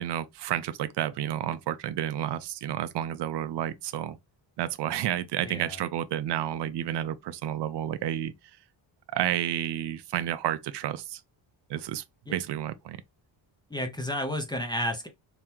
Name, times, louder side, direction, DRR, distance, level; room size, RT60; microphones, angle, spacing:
voice 1, 0.0-4.2 4.6-8.3 9.1-11.2 11.7-13.0, right 11 dB, 65° right, 0.5 m, -31 dB
voice 2, 5.4-5.8 12.3-12.4 13.7-15.1, left 1 dB, 10° left, 0.6 m, -31 dB
3.6 x 2.9 x 2.8 m
wide cardioid pair, 165°, 46 cm